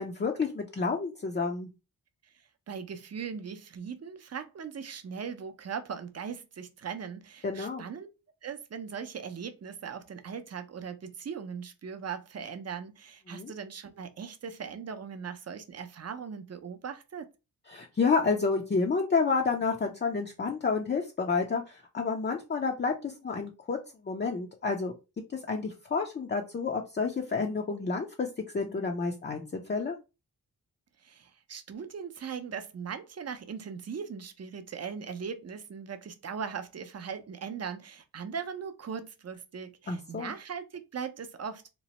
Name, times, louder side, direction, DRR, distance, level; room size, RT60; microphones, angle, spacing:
voice 1, 0.0-1.7 7.4-7.8 13.3-13.5 17.7-23.8 24.0-24.9 25.3-28.3 28.5-30.0 39.9-40.3, left 4 dB, 25° left, 0.5 m, -30 dB
voice 2, 2.7-8.1 8.4-17.3 31.0-41.7, right 6 dB, 40° right, 0.6 m, -39 dB
3.0 x 2.0 x 2.9 m
cardioid pair, 50°, 40 cm